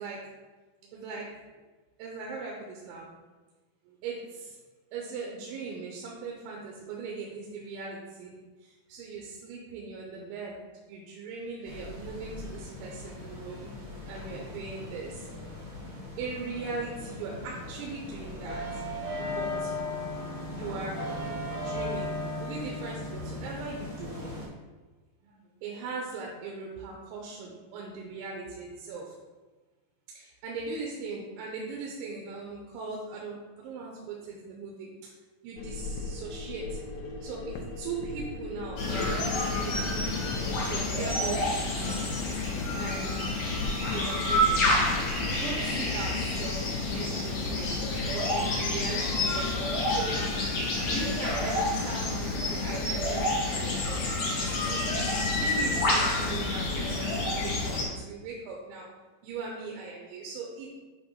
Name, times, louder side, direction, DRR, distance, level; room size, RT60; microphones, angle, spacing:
voice 1, 0.9-1.4 2.0-3.1 3.9-4.6 4.9-10.6 10.9-13.7 14.0-15.3 16.2-18.8 19.2-19.7 20.5-21.0 21.5-24.2 25.2-29.1 30.1-34.9 35.4-36.8 37.2-40.0 40.6-42.1 42.8-43.3 43.9-44.7 45.3-47.8 48.1-49.4 49.8-50.3 50.8-54.1 54.5-58.9 59.2-60.7, right 4 dB, 90° right, -2 dB, 3.3 m, -39 dB
sound 1, 11.6-24.5, left 1 dB, 45° right, 0.8 m, -37 dB
sound 2, 35.6-40.8, left 3 dB, 75° left, 2.4 m, -38 dB
sound 3, 38.8-57.8, left 2 dB, 55° left, 2.7 m, -28 dB
8.4 x 3.1 x 5.5 m, 1.2 s
omnidirectional pair, 5.2 m